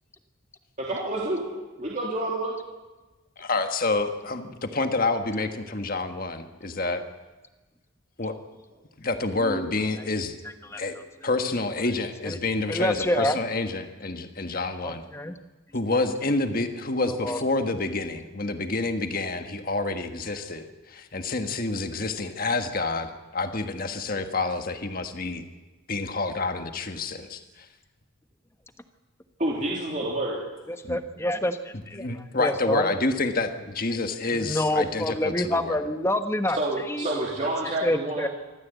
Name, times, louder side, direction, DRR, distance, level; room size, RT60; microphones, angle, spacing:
voice 1, 0.8-1.4 1.8-2.6 29.4-30.5 36.6-38.3, right 1 dB, 35° right, -4 dB, 3.2 m, -28 dB
voice 2, 3.4-7.0 8.2-8.4 9.0-10.3 10.7-11.0 11.2-15.0 15.7-25.4 25.9-27.7 30.8-31.0 31.7-35.8, left 3 dB, 45° left, 7 dB, 1.5 m, -28 dB
voice 3, 12.7-13.4 14.8-15.3 17.0-17.4 30.7-32.1 32.4-32.9 34.3-36.6 36.9-37.2 37.8-38.3, left 1 dB, 10° left, 8 dB, 1.1 m, -27 dB
25.0 x 14.5 x 8.2 m, 1.2 s
head